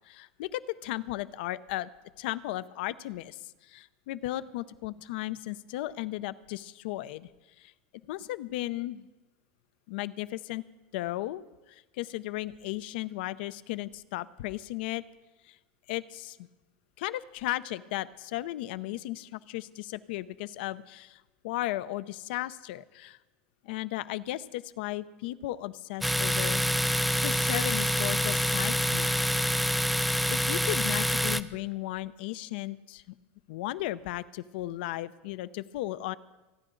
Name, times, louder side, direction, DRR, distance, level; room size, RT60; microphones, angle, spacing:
voice 1, 0.1-1.9 2.2-7.3 7.6-7.7 8.1-9.1 9.9-10.6 10.9-15.0 15.5-15.6 15.9-16.4 17.0-23.2 23.6-26.6 27.2-29.3 30.3-33.1 33.5-36.2, left 16 dB, 70° left, 16 dB, 0.6 m, -35 dB
Domestic sounds home sounds, 26.0-31.4, equal, ahead, 0.4 m, -26 dB
28.5 x 9.9 x 3.9 m, 1.1 s
supercardioid pair, 130°, 6 cm